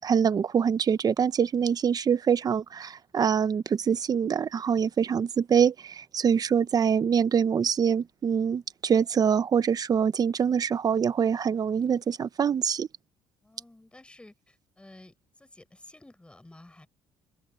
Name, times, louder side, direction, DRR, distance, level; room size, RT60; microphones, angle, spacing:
voice 1, 0.0-12.9, right 7 dB, 35° right, 0.9 m, -24 dB
voice 2, 13.4-15.1 15.4-16.9, left 2 dB, 10° left, 5.5 m, -52 dB
cardioid pair, 105°, 11 cm